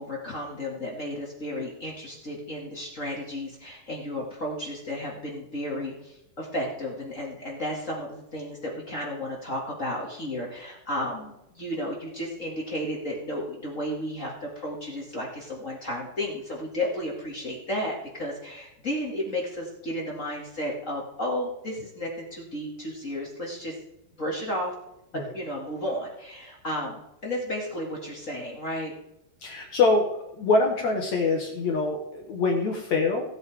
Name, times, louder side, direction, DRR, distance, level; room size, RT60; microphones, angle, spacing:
voice 1, 0.0-23.8 24.2-24.8 25.1-28.9, left 1 dB, 30° left, -2 dB, 1.6 m, -33 dB
voice 2, 29.4-30.1 30.3-33.2, left 3 dB, 60° left, 1 dB, 2.2 m, -24 dB
18.5 x 8.2 x 3.5 m, 0.85 s
omnidirectional pair, 4.4 m